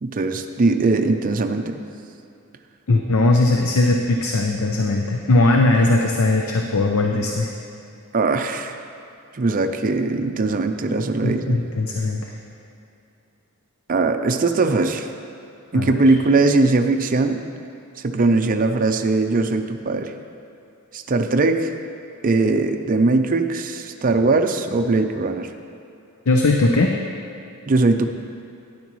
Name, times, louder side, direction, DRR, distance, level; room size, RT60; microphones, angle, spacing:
voice 1, 0.0-1.8 8.1-8.8 9.3-11.6 13.9-15.1 15.7-17.4 18.0-20.1 20.9-21.7 22.2-25.5 27.7-28.1, right 3 dB, 40° right, 5 dB, 0.5 m, -20 dB
voice 2, 2.9-7.5 11.2-12.3 15.7-15.9 26.3-26.9, left 2 dB, 65° left, 2 dB, 0.6 m, -19 dB
12.0 x 10.0 x 3.1 m, 2.7 s
head